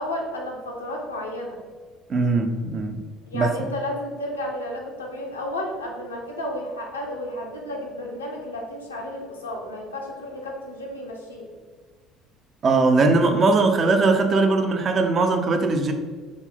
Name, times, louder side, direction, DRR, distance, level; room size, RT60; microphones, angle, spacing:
voice 1, 0.0-1.6 3.2-11.5, left 1 dB, 80° left, 0.5 m, -32 dB
voice 2, 2.1-3.0 3.3-3.5 12.6-15.9, right 3 dB, 40° right, 0.4 m, -20 dB
3.7 x 2.0 x 3.7 m
figure-of-eight pair, 55°, 0 cm